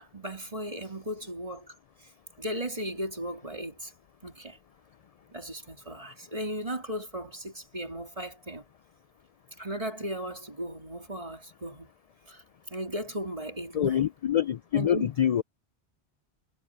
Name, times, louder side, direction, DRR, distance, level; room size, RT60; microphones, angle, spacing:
voice 1, 0.0-2.1 2.4-3.9 4.2-4.6 5.3-8.7 9.6-11.9 12.3-12.4 12.7-14.0 14.7-15.1, equal, 30° right, 3.7 m, -36 dB
voice 2, 13.7-15.4, left 10 dB, 60° left, 0.4 m, -25 dB
omnidirectional pair, 1.1 m